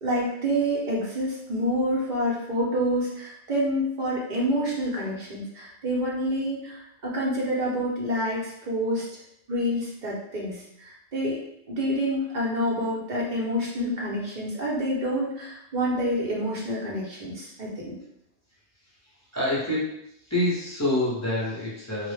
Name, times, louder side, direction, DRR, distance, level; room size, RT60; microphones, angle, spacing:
voice 1, 0.0-9.1 9.5-11.4 11.7-18.0, equal, 50° right, -4 dB, 0.7 m, -28 dB
voice 2, 19.3-22.1, left 1 dB, 20° left, -8 dB, 0.5 m, -27 dB
2.1 x 2.0 x 3.1 m, 0.76 s
omnidirectional pair, 1.2 m